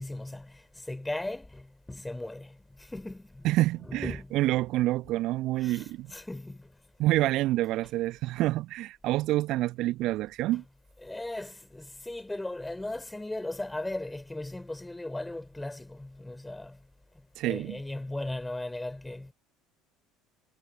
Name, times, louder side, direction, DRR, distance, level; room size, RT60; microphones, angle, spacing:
voice 1, 0.0-3.5 3.8-4.3 5.6-6.7 11.0-16.8 17.4-19.3, left 2 dB, 10° left, 4.6 m, -37 dB
voice 2, 3.4-6.1 7.0-10.6 17.3-17.8, right 16 dB, 55° right, 1.4 m, -27 dB
figure-of-eight pair, 60°, 0 cm